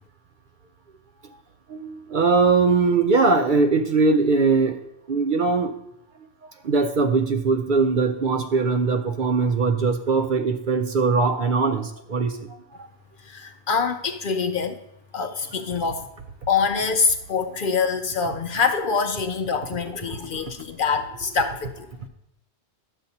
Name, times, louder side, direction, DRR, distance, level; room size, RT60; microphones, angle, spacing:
voice 1, 1.7-4.8 5.1-5.7 6.6-12.4 20.1-20.3, right 4 dB, 55° right, 6 dB, 0.6 m, -21 dB
voice 2, 13.3-14.8 15.1-16.1 16.5-21.9, left 5 dB, 60° left, 7 dB, 0.6 m, -25 dB
11.5 x 7.2 x 2.7 m, 0.86 s
omnidirectional pair, 1.2 m